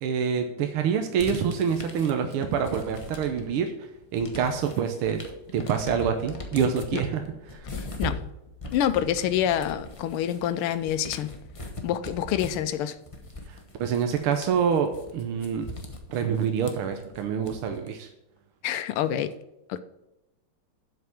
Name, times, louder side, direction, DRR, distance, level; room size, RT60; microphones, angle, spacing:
voice 1, 0.0-3.7 4.1-5.2 5.5-7.2 7.5-7.6 13.5-15.7 16.1-18.1, right 7 dB, 80° right, 1.7 m, -26 dB
sound 1, 1.2-3.6 3.9-17.9, left 2 dB, 30° left, 0.6 m, -40 dB
voice 2, 7.7-8.2 8.7-11.3 11.8-13.0 18.6-19.3 19.7-19.8, left 10 dB, 80° left, 1.5 m, -27 dB
7.8 x 5.9 x 6.9 m
omnidirectional pair, 2.4 m